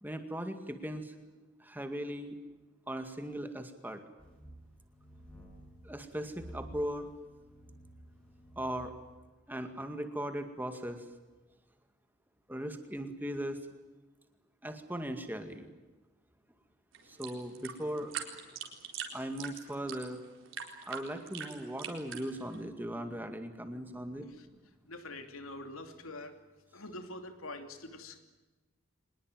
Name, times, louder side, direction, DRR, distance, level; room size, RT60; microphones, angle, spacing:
voice 1, 0.0-1.1 1.6-2.4 2.9-4.0 5.8-7.1 8.6-8.9 9.5-11.0 12.5-13.6 14.6-15.7 17.0-18.1 19.1-20.2 20.9-24.3, equal, 10° right, 6 dB, 2.1 m, -38 dB
sound 1, 4.2-9.2, right 1 dB, 5° left, 6.9 m, -52 dB
sound 2, 16.9-22.6, right 8 dB, 65° right, 4.2 m, -43 dB
voice 2, 24.8-26.4 26.7-28.2, left 2 dB, 80° left, 7 dB, 2.8 m, -45 dB
24.5 x 20.5 x 9.2 m, 1.2 s
head